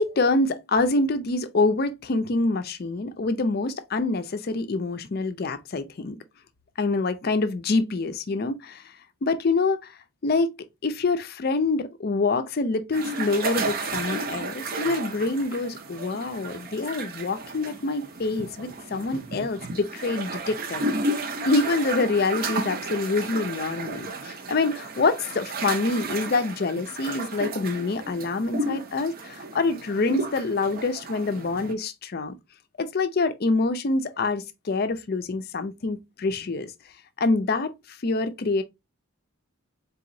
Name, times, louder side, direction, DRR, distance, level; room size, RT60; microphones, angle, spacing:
voice 1, 0.0-6.2 6.8-8.8 9.2-10.0 10.2-10.5 10.8-20.9 21.5-32.3 32.8-36.7 37.2-38.6, left 3 dB, 45° left, 0.4 m, -26 dB
sound 1, 12.9-31.7, right 2 dB, 40° right, 0.5 m, -33 dB
4.0 x 2.9 x 2.6 m
head